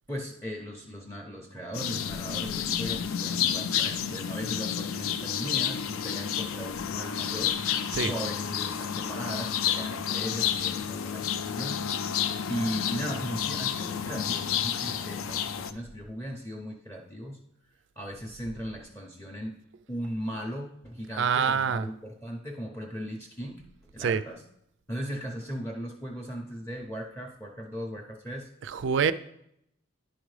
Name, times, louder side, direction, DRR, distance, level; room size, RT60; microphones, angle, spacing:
voice 1, 0.1-12.1 12.5-17.4 18.0-19.5 19.9-23.7 23.9-24.4 24.9-28.5, equal, 10° left, 1 dB, 0.6 m, -38 dB
sound 1, 1.7-15.7, left 8 dB, 75° left, 0.4 m, -30 dB
voice 2, 21.2-21.9 24.0-24.2 28.6-29.1, right 6 dB, 55° right, 14 dB, 0.3 m, -26 dB
10.0 x 4.9 x 3.2 m, 0.76 s
head